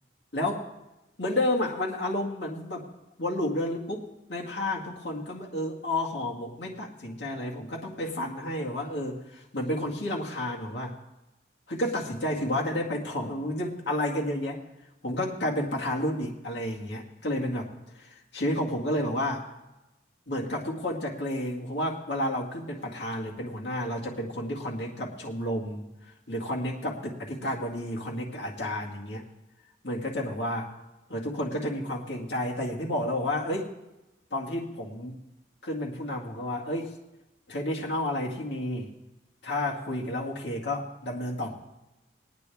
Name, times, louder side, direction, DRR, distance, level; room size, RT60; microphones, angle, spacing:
voice 1, 0.3-0.7 1.2-2.9 3.2-11.0 11.7-14.6 15.0-19.4 20.3-25.9 26.3-29.2 29.8-30.7 31.1-33.7 34.3-35.2 35.6-36.9 37.5-38.9 39.4-41.5, left 1 dB, 75° left, -2 dB, 2.1 m, -31 dB
20.5 x 9.7 x 3.5 m, 0.98 s
head